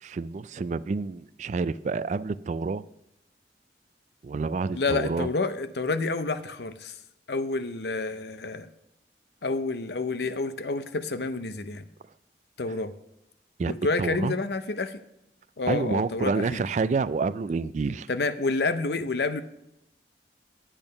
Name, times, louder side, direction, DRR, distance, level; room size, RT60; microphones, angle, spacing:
voice 1, 0.0-2.8 4.2-5.3 13.6-13.7 14.0-14.4 15.7-18.1, right 4 dB, 40° right, 17 dB, 0.3 m, -28 dB
voice 2, 4.7-7.0 7.3-8.7 9.4-11.9 12.6-12.9 13.6-15.0 15.6-16.6 18.1-19.4, left 3 dB, 65° left, 12 dB, 0.7 m, -29 dB
10.5 x 8.9 x 5.3 m, 0.83 s
head